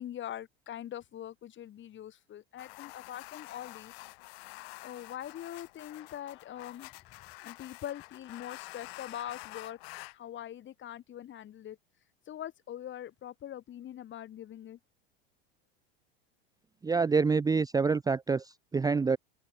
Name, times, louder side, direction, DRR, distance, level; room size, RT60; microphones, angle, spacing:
voice 1, 0.0-3.9 4.8-7.0 7.4-9.8 10.1-11.8 12.3-14.8, left 11 dB, 35° left, 4.6 m, -43 dB
sound 1, 2.6-10.2, left 23 dB, 70° left, 7.6 m, -48 dB
voice 2, 16.8-19.2, right 4 dB, 10° right, 0.7 m, -27 dB
open air
hypercardioid pair, 105°, 31 cm